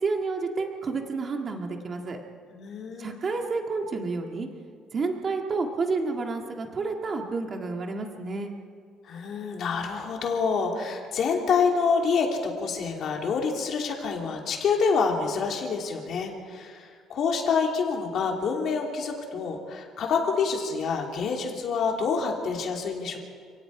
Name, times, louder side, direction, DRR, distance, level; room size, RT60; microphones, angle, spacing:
voice 1, 0.0-2.2 3.0-4.5 4.9-8.5, right 4 dB, 30° right, 3 dB, 1.9 m, -30 dB
voice 2, 2.5-3.2 9.0-23.2, left 5 dB, 45° left, 1 dB, 3.1 m, -27 dB
29.5 x 18.5 x 4.9 m, 2.2 s
cardioid pair, 170°, 0 cm